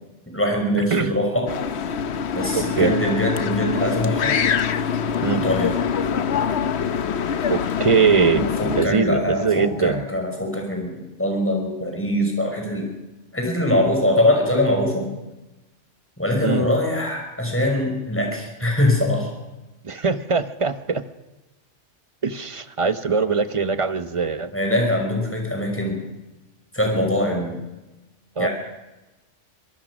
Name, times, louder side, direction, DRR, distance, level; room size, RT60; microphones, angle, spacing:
voice 1, 0.3-1.5 2.3-4.3 5.3-5.8 8.3-12.9 13.3-15.1 16.2-19.3 24.5-26.0 26.7-27.6 28.4-28.5, left 1 dB, 10° left, 1 dB, 5.5 m, -22 dB
sound 1, 1.5-8.9, left 7 dB, 65° left, 1.1 m, -24 dB
voice 2, 2.5-2.9 5.2-5.4 7.5-8.5 8.7-10.0 16.4-16.7 19.8-21.0 22.2-24.5 28.4-28.5, right 5 dB, 30° right, 12 dB, 0.9 m, -21 dB
25.0 x 18.5 x 6.2 m, 1.1 s
omnidirectional pair, 1.2 m